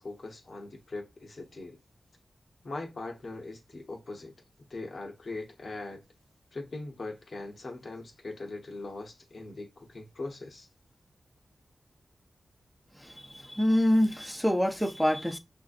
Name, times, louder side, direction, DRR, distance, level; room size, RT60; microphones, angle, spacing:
voice 1, 0.0-1.8 2.6-4.3 4.7-6.0 6.5-10.7, left 2 dB, 65° left, 0.9 m, -40 dB
voice 2, 13.0-15.4, left 1 dB, ahead, 0.7 m, -26 dB
5.5 x 2.6 x 2.5 m
cardioid pair, 50°, 0 cm